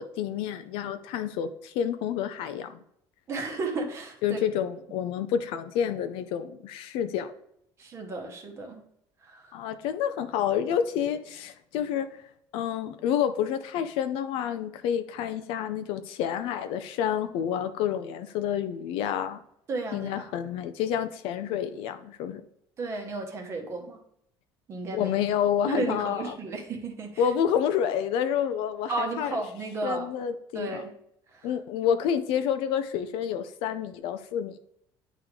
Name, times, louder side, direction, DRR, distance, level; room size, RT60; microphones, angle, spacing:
voice 1, 0.0-2.7 4.2-7.3 9.5-12.1 12.5-19.4 19.9-22.4 24.9-26.4 27.2-29.3 29.8-30.8 31.4-34.6, left 9 dB, 65° left, 10 dB, 0.5 m, -29 dB
voice 2, 3.3-4.4 7.8-8.8 9.2-9.5 19.7-20.3 22.8-24.0 24.7-25.1 25.7-27.3 28.9-30.1 30.5-30.9 31.3-31.5, right 3 dB, 30° right, 3 dB, 0.9 m, -33 dB
9.8 x 3.7 x 3.1 m, 0.74 s
cardioid pair, 175°, 10 cm